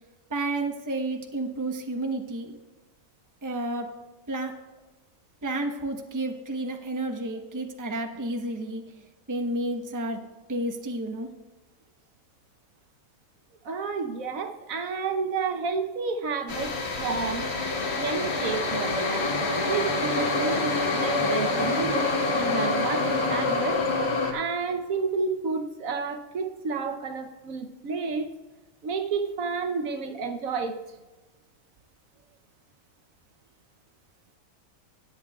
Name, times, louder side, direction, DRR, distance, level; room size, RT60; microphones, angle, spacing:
voice 1, 0.3-2.6 3.4-3.9 4.3-4.6 5.4-10.2 10.5-11.3, right 2 dB, 15° right, 3 dB, 0.8 m, -31 dB
voice 2, 13.6-17.5 18.0-19.3 19.7-23.8 24.3-28.3 28.8-30.8, right 4 dB, 65° right, 6 dB, 1.2 m, -30 dB
sound 1, 16.5-24.3, left 3 dB, 45° left, 1.4 m, -26 dB
18.0 x 8.1 x 2.3 m, 1.2 s
omnidirectional pair, 1.6 m